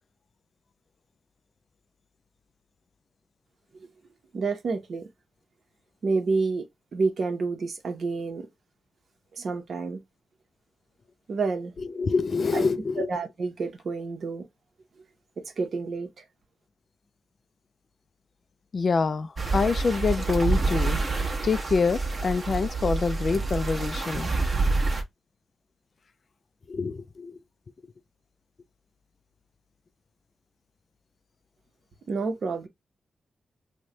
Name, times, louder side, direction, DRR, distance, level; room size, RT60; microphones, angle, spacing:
voice 1, 4.3-5.1 6.0-6.7 6.9-8.5 9.3-10.0 11.3-12.0 12.5-12.6 13.0-14.5 15.4-16.2 32.1-32.7, right 4 dB, 60° right, 0.8 m, -29 dB
voice 2, 11.8-13.1 18.7-21.0 21.4-24.3 26.7-27.4, left 4 dB, 50° left, 0.3 m, -26 dB
sound 1, 19.4-25.0, right 3 dB, 35° right, 1.0 m, -27 dB
3.1 x 2.2 x 3.8 m
wide cardioid pair, 115°, 0 cm